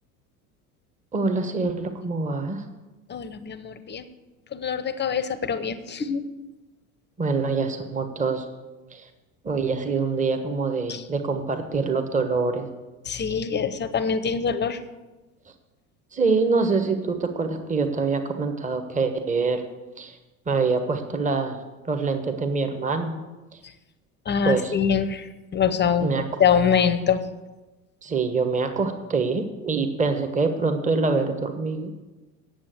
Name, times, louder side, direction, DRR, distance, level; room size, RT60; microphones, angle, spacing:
voice 1, 1.1-2.6 7.2-8.5 8.9-9.1 9.4-12.7 16.1-19.6 20.0-20.2 20.5-21.6 21.9-23.2 23.5-23.6 24.4-24.7 26.0-26.2 28.0-31.9, right 4 dB, 15° right, 7 dB, 1.2 m, -25 dB
voice 2, 3.1-4.1 4.5-6.2 10.9-11.0 13.1-14.8 24.3-27.2, left 7 dB, 25° left, 12 dB, 0.8 m, -24 dB
8.8 x 7.6 x 7.8 m, 1.1 s
hypercardioid pair, 75°, 46 cm